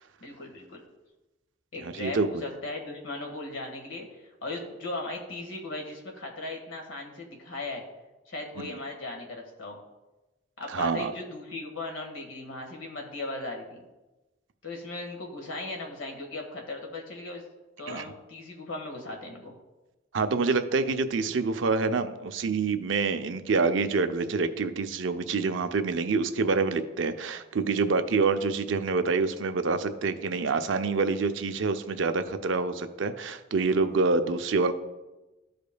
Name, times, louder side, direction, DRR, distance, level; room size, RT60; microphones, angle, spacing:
voice 1, 0.2-0.8 1.7-7.8 8.3-9.8 10.6-13.8 14.6-17.4 17.8-19.5, left 2 dB, 85° left, 2 dB, 1.6 m, -37 dB
voice 2, 1.9-2.3 8.6-8.7 10.7-11.1 17.9-18.0 20.1-34.7, right 4 dB, 75° right, 8 dB, 0.5 m, -26 dB
13.5 x 5.1 x 2.3 m, 1.1 s
head